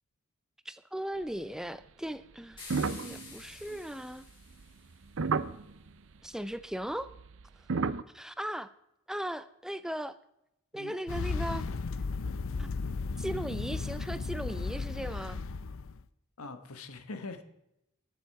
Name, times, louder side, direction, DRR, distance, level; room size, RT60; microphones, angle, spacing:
voice 1, 0.7-4.3 6.2-7.1 7.7-7.8 8.1-8.7 9.1-10.2 10.7-11.7 12.6-12.7 13.2-15.4, equal, ahead, 0.4 m, -38 dB
sound 1, 2.6-5.0, left 3 dB, 20° left, 4.6 m, -49 dB
sound 2, 2.6-5.9 6.9-8.0, right 4 dB, 60° right, 0.5 m, -32 dB
sound 3, 11.1-16.0, left 4 dB, 65° left, 0.5 m, -35 dB
voice 2, 16.4-17.4, left 3 dB, 80° left, 1.2 m, -42 dB
20.5 x 7.1 x 4.7 m
head